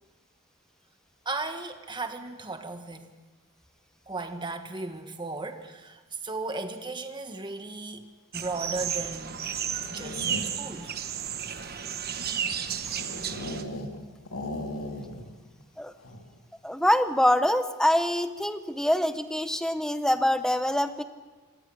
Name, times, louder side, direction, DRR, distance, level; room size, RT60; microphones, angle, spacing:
voice 1, 1.2-3.1 4.1-8.1 8.3-9.5 9.9-10.3 10.6-10.9, right 3 dB, 20° right, 7 dB, 1.5 m, -36 dB
sound 1, 8.3-13.6, right 8 dB, 45° right, 1.2 m, -33 dB
sound 2, 9.7-10.8 11.4-14.0 14.3-15.3 15.6-15.7 16.0-16.4, left 1 dB, 85° left, 2.8 m, -38 dB
voice 2, 16.6-21.0, left 1 dB, 5° left, 10 dB, 0.9 m, -25 dB
26.0 x 18.5 x 6.5 m, 1.3 s
head